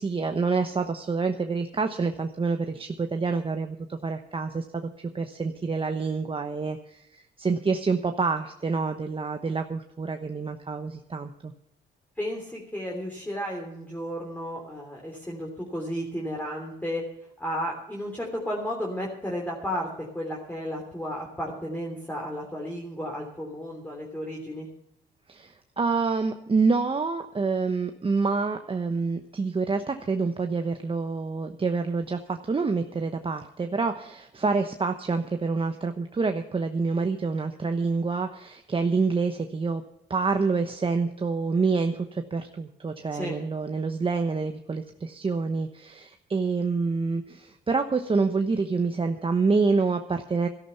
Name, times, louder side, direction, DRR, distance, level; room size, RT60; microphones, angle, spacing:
voice 1, 0.0-11.5 25.3-39.8 40.1-50.5, right 4 dB, 25° right, 6 dB, 1.0 m, -27 dB
voice 2, 12.2-17.0 17.4-24.7 43.1-43.4, equal, 10° left, -2 dB, 3.3 m, -33 dB
13.0 x 12.0 x 5.7 m, 0.80 s
cardioid pair, 90°, 20 cm